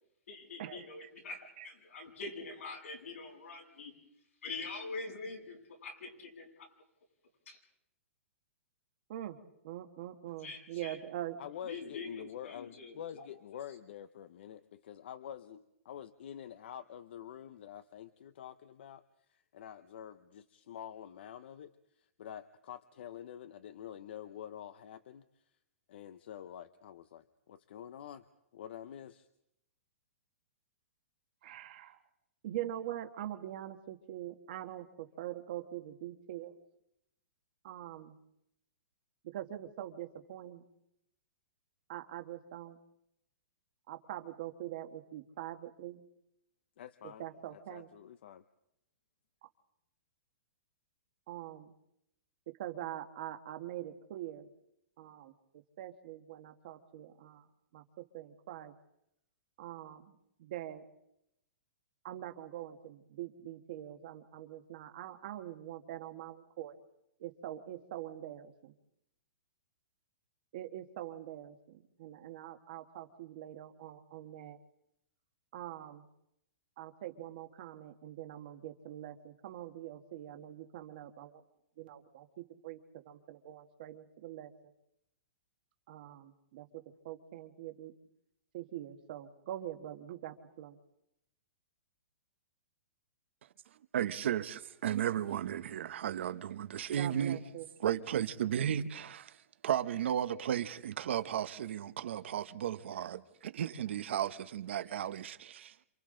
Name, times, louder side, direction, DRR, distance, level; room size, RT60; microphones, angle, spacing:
voice 1, 0.3-3.9 4.4-6.7 7.5-7.6 10.4-11.0 11.6-13.2, left 3 dB, 85° left, 7.9 m, -44 dB
voice 2, 9.6-11.4 31.4-32.0 32.4-36.5 37.6-38.2 39.3-40.6 41.9-42.8 43.9-46.0 47.2-47.9 51.3-51.7 52.6-54.5 55.0-55.3 55.8-57.4 57.7-57.8 58.1-58.7 59.6-60.1 60.4-60.8 62.0-66.7 67.2-68.7 70.5-74.6 75.5-76.1 76.8-81.4 81.8-82.8 83.0-84.5 85.9-86.7 87.0-87.9 88.5-90.8 96.9-97.7, right 12 dB, 40° right, 1.4 m, -44 dB
voice 3, 11.4-19.0 19.3-25.4 25.9-28.3 28.5-29.3 46.8-48.4, left 10 dB, 50° left, 0.7 m, -47 dB
voice 4, 93.9-97.4 97.8-99.3 99.6-105.7, right 10 dB, 60° right, 1.0 m, -34 dB
29.5 x 27.5 x 3.8 m
hypercardioid pair, 170°, 7 cm